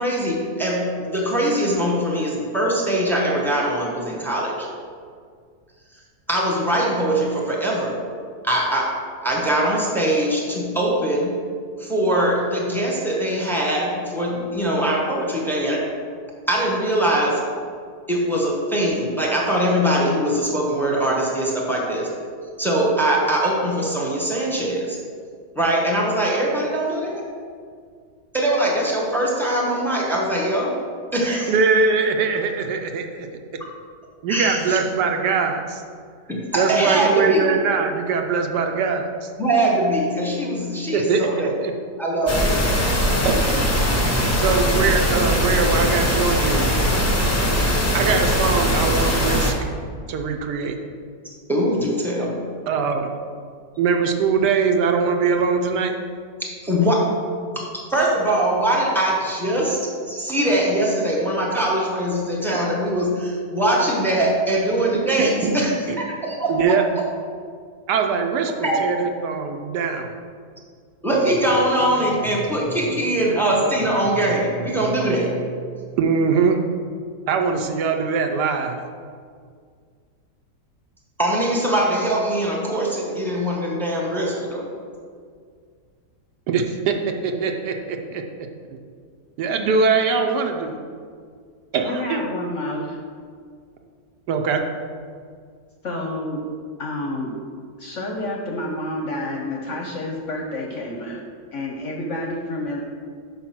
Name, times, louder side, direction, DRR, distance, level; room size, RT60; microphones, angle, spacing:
voice 1, 0.0-4.7 6.3-8.0 8.4-8.9 9.2-11.3 11.8-15.8 16.5-17.4 18.1-22.1 22.6-25.0 25.5-27.2 28.3-30.7 31.1-31.5 34.3-34.8 36.3-37.4 39.4-41.6 42.0-42.6 51.5-52.3 56.6-57.1 57.9-59.8 60.1-66.8 68.6-68.8 71.0-75.3 81.2-84.6, right 1 dB, ahead, -3 dB, 0.9 m, -22 dB
voice 2, 31.5-33.3 34.2-35.8 36.5-39.3 40.9-41.7 43.2-43.6 44.4-46.7 47.9-49.5 50.1-50.8 52.7-53.1 53.8-55.9 65.2-66.0 66.5-66.8 67.9-70.1 76.0-76.6 77.3-78.8 86.5-87.0 87.2-88.2 88.7-88.8 89.4-90.8 91.7-92.2 94.3-94.6, right 5 dB, 75° right, 4 dB, 1.2 m, -22 dB
sound 1, 42.3-49.5, equal, 20° left, 0.4 m, -20 dB
sound 2, 71.1-76.3, right 6 dB, 55° right, 1.3 m, -37 dB
voice 3, 91.8-93.0 95.8-96.4 96.8-97.3 97.8-101.2 101.5-102.8, left 1 dB, 60° left, 0 dB, 0.8 m, -29 dB
5.7 x 5.2 x 5.9 m, 2.1 s
omnidirectional pair, 1.9 m